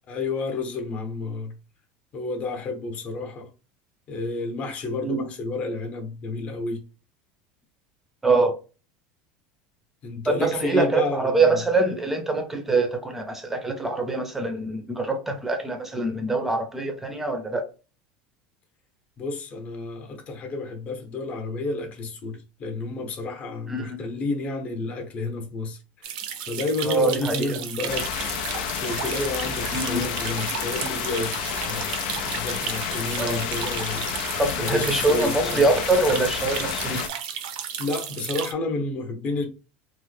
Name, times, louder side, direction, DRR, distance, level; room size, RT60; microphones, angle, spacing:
voice 1, 0.1-1.5 2.1-3.5 4.1-6.8 10.0-11.6 19.2-26.1 26.5-28.1 28.8-32.0 32.3-35.8 37.8-39.5, left 3 dB, 30° left, 0.8 m, -31 dB
voice 2, 8.2-8.5 10.3-17.7 23.7-24.0 26.8-27.6 29.7-30.0 32.1-32.2 33.2-33.5 34.4-37.0, right 3 dB, 5° right, 0.6 m, -24 dB
sound 1, 26.0-38.5, right 9 dB, 80° right, 0.6 m, -34 dB
sound 2, 27.9-37.1, left 9 dB, 85° left, 0.4 m, -30 dB
3.1 x 2.1 x 3.2 m
cardioid pair, 160°, 4 cm